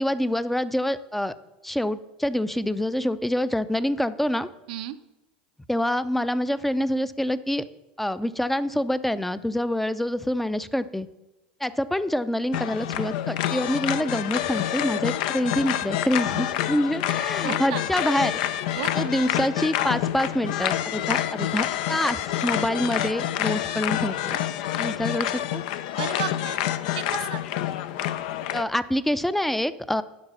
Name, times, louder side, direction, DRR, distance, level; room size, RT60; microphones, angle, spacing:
voice 1, 0.0-1.3 1.6-4.5 5.7-7.6 8.0-11.1 11.6-18.4 19.0-24.4 24.8-25.6 28.5-30.0, left 1 dB, 5° left, 15 dB, 0.5 m, -26 dB
sound 1, 12.5-28.6, left 12 dB, 70° left, 0.5 m, -27 dB
voice 2, 17.4-17.8 18.8-19.1 26.0-26.6 27.0-27.4, right 13 dB, 70° right, 11 dB, 0.6 m, -33 dB
11.5 x 4.0 x 7.1 m, 0.95 s
hypercardioid pair, 90°, 5 cm